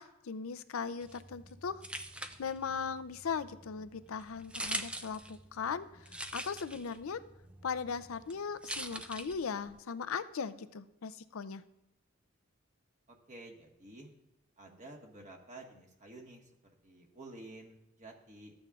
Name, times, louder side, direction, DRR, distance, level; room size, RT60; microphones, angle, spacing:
voice 1, 0.0-1.8 2.4-5.9 6.3-7.2 7.6-11.6, left 6 dB, 80° left, 13 dB, 0.5 m, -38 dB
sound 1, 1.0-9.8, right 1 dB, 5° right, 0.3 m, -44 dB
voice 2, 13.1-14.1 14.6-16.5 16.8-18.5, right 2 dB, 35° right, 0 dB, 1.4 m, -51 dB
14.0 x 8.6 x 2.4 m, 0.87 s
head